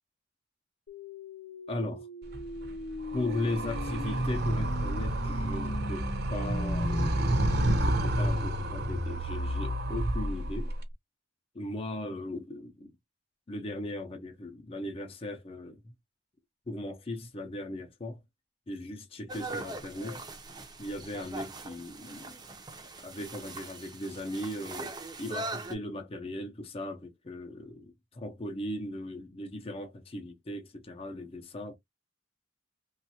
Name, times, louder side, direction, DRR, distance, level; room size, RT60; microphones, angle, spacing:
sound 1, 0.9-10.9, left 1 dB, 90° left, 0.7 m, -37 dB
voice 1, 1.7-2.1 3.1-7.3 7.7-10.7 11.5-12.9 13.5-15.9 16.7-18.2 18.7-20.2 20.8-22.4 23.0-24.9 25.2-31.8, left 1 dB, 30° left, 0.6 m, -38 dB
Animal, 2.2-10.8, right 1 dB, 55° right, 0.7 m, -31 dB
sound 2, 19.3-25.7, right 2 dB, 20° right, 0.5 m, -41 dB
3.1 x 2.3 x 2.7 m
head